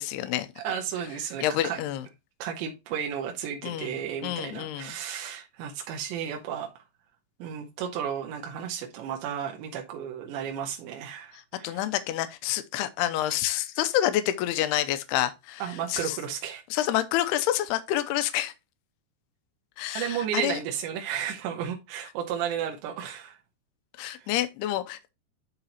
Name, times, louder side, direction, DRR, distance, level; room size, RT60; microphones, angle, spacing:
voice 1, 0.0-0.5 1.4-2.1 3.6-5.0 11.6-15.6 15.9-16.2 16.7-18.5 19.8-20.6 24.0-25.1, left 13 dB, 80° left, 2.6 m, -28 dB
voice 2, 0.6-1.8 2.4-6.7 7.4-11.8 15.6-16.6 19.9-23.4 24.2-24.3, right 9 dB, 90° right, 3.4 m, -33 dB
11.5 x 4.0 x 2.9 m
omnidirectional pair, 5.0 m